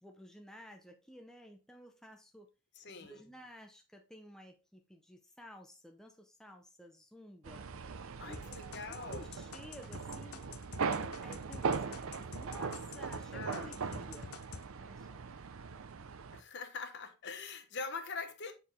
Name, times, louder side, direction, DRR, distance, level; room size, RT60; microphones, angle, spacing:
voice 1, 0.0-2.5 2.9-7.7 8.3-8.6 8.9-10.5 11.2-14.4 14.8-15.3, left 1 dB, ahead, 0.6 m, -53 dB
voice 2, 2.8-3.2 8.2-9.3 13.3-13.7 16.3-18.5, left 4 dB, 50° left, 1.0 m, -43 dB
sound 1, 7.4-16.4, right 5 dB, 70° right, 0.6 m, -40 dB
sound 2, 8.3-13.2 13.5-14.6, left 5 dB, 85° left, 0.7 m, -48 dB
7.1 x 4.6 x 3.4 m
head